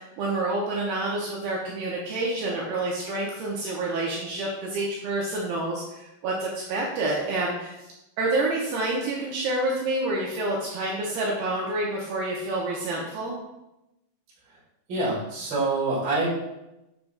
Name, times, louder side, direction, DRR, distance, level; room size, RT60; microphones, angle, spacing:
voice 1, 0.0-7.7 8.2-13.4, right 2 dB, 75° right, -3 dB, 2.6 m, -28 dB
voice 2, 14.9-16.3, right 2 dB, 35° right, -7 dB, 2.3 m, -26 dB
7.1 x 6.6 x 2.3 m, 0.92 s
omnidirectional pair, 5.0 m